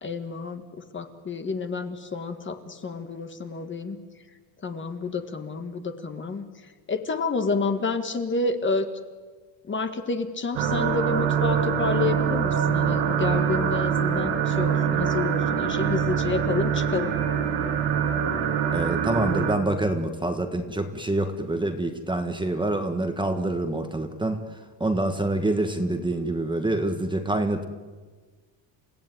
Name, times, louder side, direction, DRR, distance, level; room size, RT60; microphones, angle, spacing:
voice 1, 0.0-0.6 0.9-4.0 4.6-6.4 6.9-8.9 9.7-17.2, left 3 dB, 25° left, 7 dB, 1.5 m, -29 dB
sound 1, 10.5-19.5, right 7 dB, 90° right, 4.3 m, -24 dB
voice 2, 18.7-24.4 24.8-27.7, right 2 dB, 10° right, 6 dB, 1.5 m, -26 dB
29.5 x 16.0 x 9.3 m, 1.4 s
cardioid pair, 150°, 47 cm